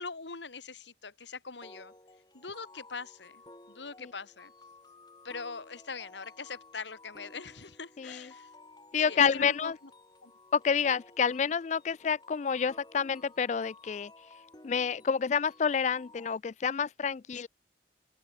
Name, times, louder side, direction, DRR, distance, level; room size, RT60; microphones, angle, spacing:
voice 1, 0.0-1.9 2.3-3.4 3.7-4.5 5.2-8.5 9.0-9.7 10.2-10.3 17.3-17.5, left 4 dB, 80° left, 1.9 m, -42 dB
sound 1, 1.6-16.4, left 2 dB, 25° left, 4.7 m, -55 dB
voice 2, 8.9-9.7 10.5-14.1 14.6-17.5, left 6 dB, 40° left, 0.3 m, -28 dB
open air
head